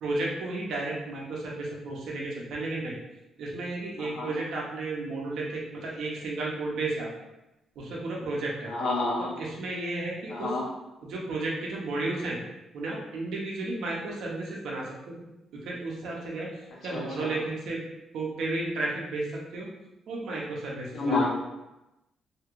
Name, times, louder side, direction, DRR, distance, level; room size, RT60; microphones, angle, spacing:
voice 1, 0.0-2.9 3.4-7.1 7.8-8.7 9.4-10.5 11.0-12.4 12.7-14.8 15.7-16.5 16.8-17.8 18.1-19.2 19.5-19.7 20.1-21.3, right 2 dB, 75° right, -3 dB, 0.8 m, -33 dB
voice 2, 4.0-4.4 8.6-9.3 10.3-10.6 16.9-17.4 20.9-21.3, left 3 dB, 70° left, -4 dB, 1.0 m, -29 dB
2.8 x 2.4 x 3.0 m, 0.96 s
cardioid pair, 90°, 0 cm